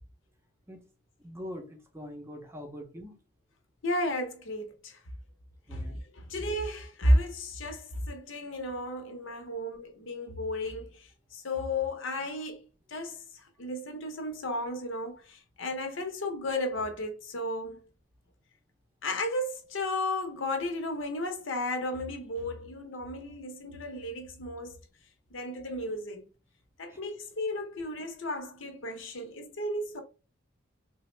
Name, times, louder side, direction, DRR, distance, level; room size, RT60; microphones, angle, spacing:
voice 1, 1.2-3.2 5.7-5.9 26.9-27.0, left 1 dB, 10° right, 0.5 m, -43 dB
voice 2, 3.8-5.0 5.7-12.6 12.9-17.8 19.0-24.8 25.3-26.3 26.8-30.0, left 1 dB, 70° left, 0.7 m, -33 dB
3.4 x 2.0 x 3.1 m
head